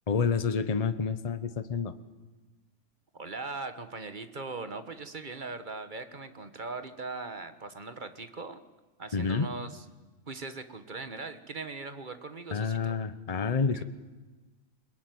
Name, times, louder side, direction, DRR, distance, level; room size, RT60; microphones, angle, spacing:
voice 1, 0.1-1.9 9.1-9.5 12.5-13.8, left 5 dB, 30° left, 12 dB, 1.0 m, -28 dB
voice 2, 3.1-8.6 9.0-9.8 10.3-13.0 13.7-13.8, right 3 dB, 40° right, 9 dB, 1.5 m, -40 dB
22.0 x 21.0 x 9.5 m, 1.2 s
omnidirectional pair, 1.4 m